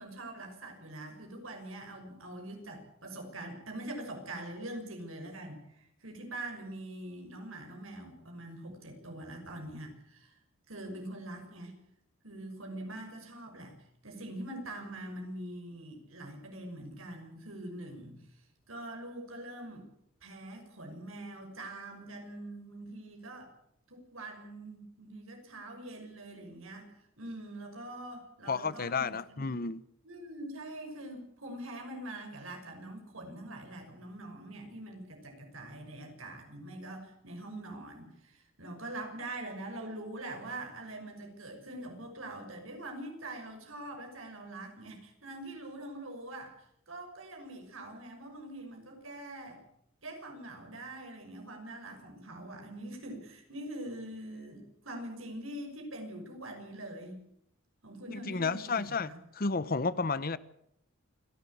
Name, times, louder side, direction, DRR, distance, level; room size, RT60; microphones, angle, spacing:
voice 1, 0.0-10.4 10.7-11.7 12.2-18.4 18.7-19.8 20.2-23.5 23.9-29.6 30.0-49.6 50.0-57.2 57.8-59.2, right 1 dB, 85° right, 6.2 m, -44 dB
voice 2, 28.5-29.8 58.1-60.4, left 4 dB, 45° left, 0.9 m, -32 dB
28.5 x 12.0 x 8.6 m
head